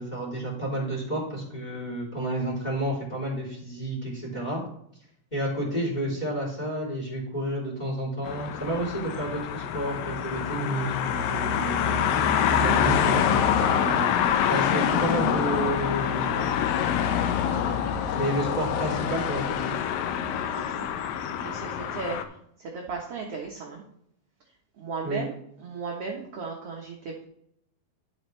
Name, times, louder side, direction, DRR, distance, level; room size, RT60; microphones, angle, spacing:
voice 1, 0.0-4.6 5.3-12.0 12.5-13.4 13.6-14.1 14.5-16.4 18.1-19.7 25.0-25.2, right 1 dB, 10° left, -3 dB, 2.9 m, -30 dB
sound 1, 8.2-22.2, left 8 dB, 80° left, 2.4 m, -26 dB
voice 2, 17.4-18.1 20.5-20.9 21.4-23.8 24.8-25.3 25.6-27.2, right 4 dB, 60° right, 0 dB, 1.6 m, -36 dB
11.0 x 7.8 x 3.2 m, 0.70 s
omnidirectional pair, 4.2 m